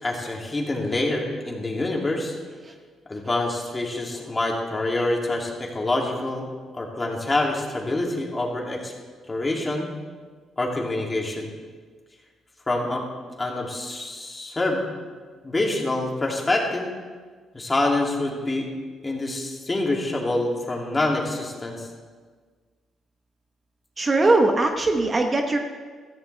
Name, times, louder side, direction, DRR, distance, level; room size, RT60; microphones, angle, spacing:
voice 1, 0.0-2.3 3.1-6.4 6.7-8.9 9.3-9.9 10.6-11.5 12.7-13.0 13.4-14.9 15.4-16.9 17.5-18.7 19.0-21.9, left 2 dB, 20° left, -1 dB, 2.7 m, -26 dB
voice 2, 24.0-25.6, right 2 dB, 30° right, 4 dB, 1.1 m, -21 dB
16.5 x 14.0 x 3.4 m, 1.5 s
cardioid pair, 90°, 0 cm